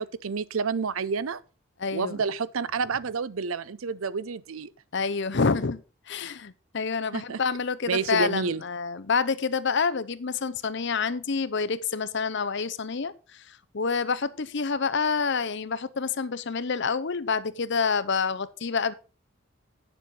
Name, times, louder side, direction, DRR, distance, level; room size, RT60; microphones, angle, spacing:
voice 1, 0.0-1.4 1.9-4.7 7.1-7.4 7.9-8.6, right 5 dB, 80° right, 0.6 m, -29 dB
voice 2, 1.8-2.2 4.9-18.9, left 5 dB, 55° left, 0.7 m, -28 dB
9.4 x 7.0 x 5.4 m
head